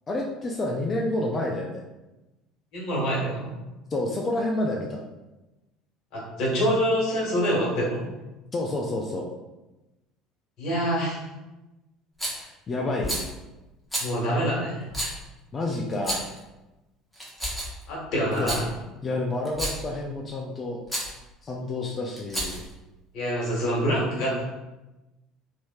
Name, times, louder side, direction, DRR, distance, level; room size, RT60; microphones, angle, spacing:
voice 1, 0.1-1.8 3.9-5.0 8.5-9.3 12.7-13.2 15.5-16.2 18.4-18.5 19.0-20.8 21.4-22.6, left 2 dB, 35° left, -1 dB, 0.4 m, -29 dB
voice 2, 2.7-3.5 6.1-8.1 10.6-11.2 14.0-14.9 17.9-18.6 23.1-24.4, equal, 55° left, -4 dB, 1.4 m, -26 dB
Rattle, 12.2-12.5 13.0-13.3 13.9-14.1 14.9-15.2 15.9-16.4 17.1-17.8 18.3-18.6 19.4-19.9 20.9-21.1 22.2-22.7, right 1 dB, 5° left, 1.1 m, -30 dB
2.9 x 2.8 x 2.3 m, 1.0 s
hypercardioid pair, 65°, 0 cm